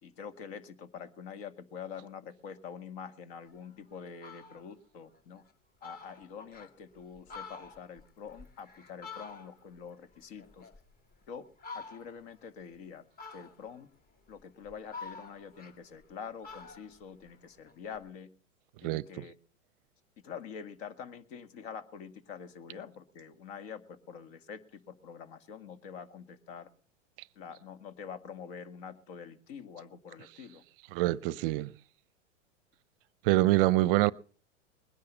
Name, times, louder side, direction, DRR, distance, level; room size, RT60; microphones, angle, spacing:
voice 1, 0.0-5.4 5.8-10.7 11.3-11.5 11.7-13.0 13.3-13.9 14.3-18.3 18.8-19.3 20.2-26.7 27.4-30.6, left 7 dB, 55° left, 2.1 m, -46 dB
Fowl, 3.6-3.7 4.1-4.7 5.1-5.2 5.5-5.6 5.8-6.7 7.1-9.8 10.1-11.2 11.6-12.3 13.2-13.8 14.4-16.1 16.4-18.0, left 4 dB, 25° left, 2.2 m, -48 dB
voice 2, 30.9-31.7 33.2-34.1, right 17 dB, 45° right, 0.6 m, -25 dB
21.0 x 10.5 x 5.5 m
hypercardioid pair, 105°, 38 cm